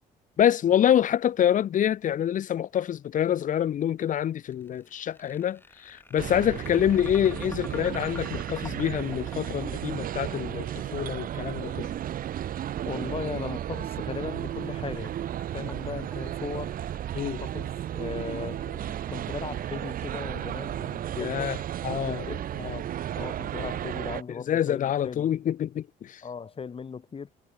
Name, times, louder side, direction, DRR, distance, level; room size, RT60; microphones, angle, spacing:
voice 1, 0.4-11.9 17.1-17.4 21.2-21.6 21.8-22.3 22.6-22.8 24.5-26.2, left 10 dB, 50° left, 1.1 m, -26 dB
sound 1, 4.5-20.6, left 2 dB, 10° left, 7.9 m, -49 dB
sound 2, 6.2-24.2, right 11 dB, 55° right, 1.7 m, -34 dB
voice 2, 12.8-15.1 15.5-16.8 17.4-21.5 21.9-22.5 23.1-25.4 26.2-27.3, left 6 dB, 35° left, 5.1 m, -38 dB
cardioid pair, 110°, 17 cm